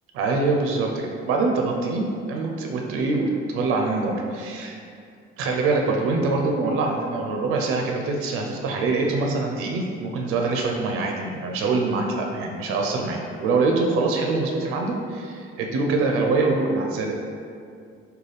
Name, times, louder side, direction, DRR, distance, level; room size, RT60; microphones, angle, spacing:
voice 1, 0.2-4.8 5.4-17.1, right 3 dB, 85° right, 1 dB, 0.4 m, -24 dB
3.9 x 2.2 x 3.2 m, 2.3 s
cardioid pair, 165°, 21 cm